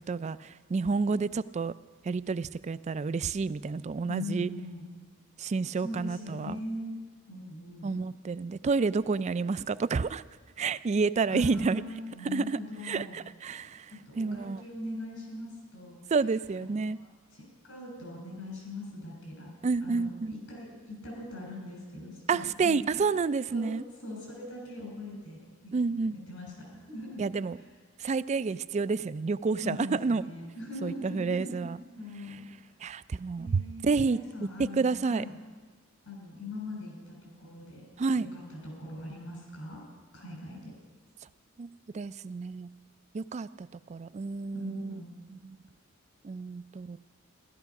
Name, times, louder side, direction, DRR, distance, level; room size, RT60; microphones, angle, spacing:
voice 1, 0.0-1.7 2.0-4.5 5.4-6.6 7.8-10.2 10.6-11.8 12.3-12.6 12.8-13.9 14.2-14.6 16.1-17.0 19.6-20.3 22.3-23.8 25.7-26.2 27.2-27.6 28.0-30.2 30.8-31.8 32.8-35.2 38.0-38.3 41.6-41.7 41.9-42.7 43.1-45.0 45.3-45.6 46.2-47.0, right 4 dB, 35° right, 16 dB, 0.3 m, -29 dB
voice 2, 4.1-4.9 5.8-7.0 7.3-7.9 11.3-13.2 13.9-16.0 16.6-17.0 17.3-19.5 19.8-22.8 23.5-23.7 24.0-25.7 26.1-27.2 29.6-31.6 32.0-32.5 33.4-35.3 36.0-37.8 38.2-39.8 40.1-40.7 44.5-45.1, left 1 dB, 75° left, -1 dB, 6.2 m, -41 dB
15.5 x 13.0 x 5.9 m, 1.4 s
head